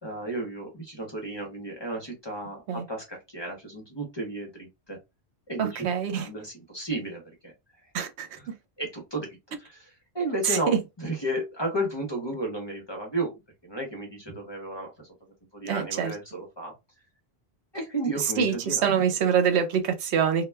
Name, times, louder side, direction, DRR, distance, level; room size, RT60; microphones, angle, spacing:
voice 1, 0.0-5.0 5.5-5.9 6.1-7.5 8.4-8.5 8.8-13.3 13.6-15.1 15.5-16.7 17.7-19.2, right 1 dB, 30° left, 0.6 m, -33 dB
voice 2, 5.6-6.3 7.9-8.3 10.5-10.8 15.7-16.1 18.4-20.5, right 7 dB, 80° right, 0.8 m, -25 dB
2.1 x 2.1 x 3.2 m
omnidirectional pair, 1.1 m